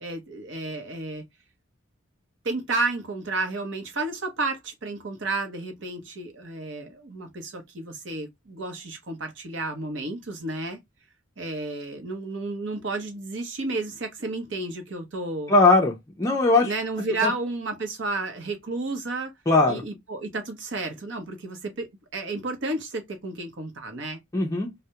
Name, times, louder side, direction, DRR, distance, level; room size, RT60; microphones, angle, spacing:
voice 1, 0.0-1.2 2.4-10.8 11.4-15.5 16.6-19.3 19.7-24.2, right 2 dB, 65° right, 0.7 m, -32 dB
voice 2, 15.5-16.7 17.2-17.3 19.5-19.8 24.3-24.7, left 3 dB, 15° left, 0.4 m, -20 dB
2.2 x 2.1 x 2.7 m
head